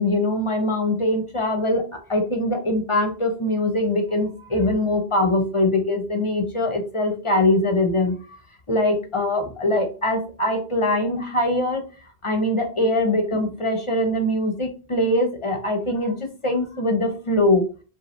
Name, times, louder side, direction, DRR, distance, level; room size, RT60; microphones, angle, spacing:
voice 1, 0.0-8.2 8.7-11.8 12.2-16.1 16.4-17.6, left 1 dB, 35° left, 4 dB, 0.6 m, -22 dB
5.2 x 2.4 x 3.1 m, 0.37 s
omnidirectional pair, 1.1 m